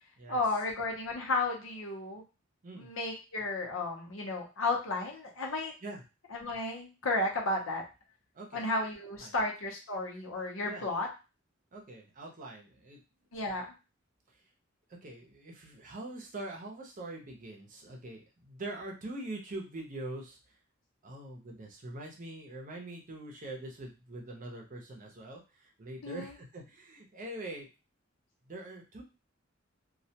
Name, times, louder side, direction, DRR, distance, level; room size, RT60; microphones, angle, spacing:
voice 1, 0.3-2.2 2.8-5.7 6.3-7.8 8.5-11.1 13.3-13.7 26.0-26.4, left 2 dB, 85° left, 0 dB, 0.7 m, -33 dB
voice 2, 8.3-8.7 9.2-9.3 10.6-10.9 11.7-13.0 15.0-20.4 21.0-27.7 28.5-29.0, right 2 dB, 40° right, 0 dB, 0.6 m, -43 dB
2.3 x 2.1 x 2.7 m, 0.30 s
head